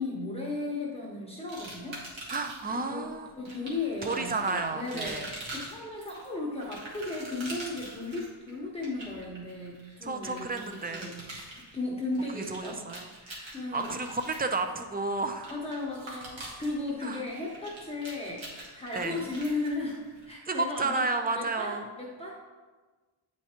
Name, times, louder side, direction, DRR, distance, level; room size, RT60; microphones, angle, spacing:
voice 1, 0.0-2.0 2.7-3.1 3.4-11.2 11.5-12.8 13.2-14.0 15.5-20.0 20.3-21.0 21.3-22.3, left 2 dB, 10° left, -5 dB, 0.9 m, -35 dB
sound 1, 1.5-2.8 3.4-20.3, right 1 dB, 70° right, 1.8 m, -44 dB
voice 2, 2.3-3.3 4.0-5.3 10.0-11.1 12.3-13.1 13.7-15.5 17.0-17.2 18.9-19.3 20.5-21.9, right 3 dB, 20° right, 6 dB, 0.4 m, -32 dB
8.3 x 4.5 x 2.9 m, 1.3 s
wide cardioid pair, 105°, 48 cm